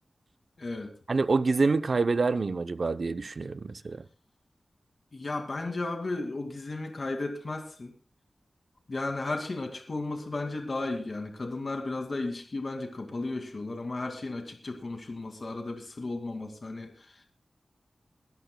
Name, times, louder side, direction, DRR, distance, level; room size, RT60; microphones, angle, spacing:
voice 1, 0.6-0.9 5.1-7.9 8.9-17.2, left 2 dB, 50° left, 2.2 m, -34 dB
voice 2, 1.1-4.0, right 3 dB, 60° right, 0.6 m, -26 dB
22.5 x 13.0 x 2.3 m
wide cardioid pair, 85°, 0 cm